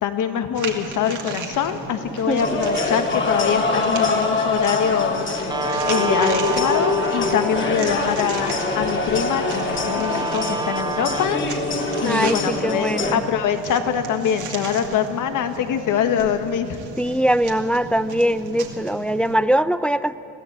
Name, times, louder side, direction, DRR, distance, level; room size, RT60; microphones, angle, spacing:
voice 1, 0.0-11.4 12.0-16.8, left 8 dB, 65° left, 7 dB, 1.6 m, -24 dB
sound 1, 0.6-19.4, right 4 dB, 60° right, 2.6 m, -36 dB
voice 2, 2.3-2.6 12.0-13.2 17.0-20.1, right 1 dB, 5° left, 13 dB, 0.5 m, -22 dB
sound 2, 2.4-13.2, left 3 dB, 35° left, 2.4 m, -24 dB
Guitar, 5.5-12.5, right 3 dB, 15° right, 1.0 m, -29 dB
22.0 x 14.5 x 8.3 m, 2.7 s
cardioid pair, 95°, 34 cm